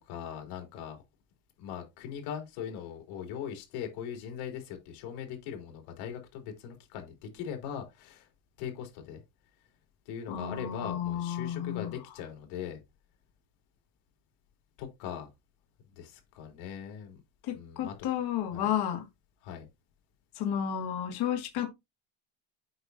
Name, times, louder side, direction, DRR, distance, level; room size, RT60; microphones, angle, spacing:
voice 1, 0.1-1.0 1.6-8.3 8.6-9.2 10.1-12.8 14.8-15.3 16.0-17.2 17.5-18.1 18.5-18.7 19.4-19.7, left 8 dB, 80° left, 3.4 m, -40 dB
voice 2, 10.3-11.9 17.4-19.0 20.4-21.7, left 9 dB, 50° left, 2.1 m, -32 dB
8.0 x 6.1 x 2.7 m
cardioid pair, 155°, 48 cm